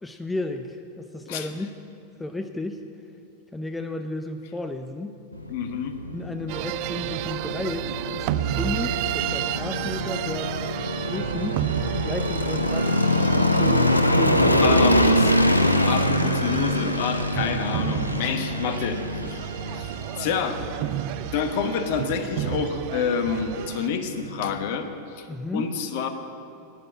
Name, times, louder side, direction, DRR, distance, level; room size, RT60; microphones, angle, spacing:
voice 1, 0.0-1.7 2.2-2.9 3.5-5.1 6.1-10.7 11.1-11.7 12.0-13.1 13.4-14.8 20.2-20.3 25.3-25.7, left 2 dB, 10° left, 6 dB, 0.6 m, -33 dB
sound 1, 5.3-24.7, left 1 dB, 85° left, 0.6 m, -25 dB
voice 2, 5.5-5.9 14.6-15.3 15.9-19.4 19.7-20.6 21.3-25.3 25.5-26.1, left 6 dB, 50° left, 8 dB, 1.1 m, -28 dB
sound 2, 6.5-23.9, right 14 dB, 45° right, 0.3 m, -32 dB
9.9 x 9.3 x 8.7 m, 2.6 s
figure-of-eight pair, 90°, 0 cm